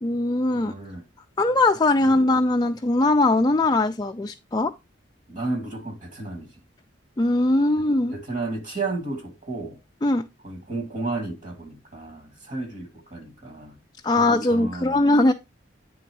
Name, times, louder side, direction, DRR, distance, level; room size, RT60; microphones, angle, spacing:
voice 1, 0.0-0.7 1.4-4.7 7.2-8.1 10.0-10.2 14.0-15.3, left 2 dB, 20° left, 0.4 m, -20 dB
voice 2, 0.5-1.0 2.1-2.2 5.3-6.5 8.1-9.8 10.4-13.8 14.1-15.1, right 3 dB, 45° right, 2.0 m, -33 dB
9.3 x 3.9 x 4.6 m
head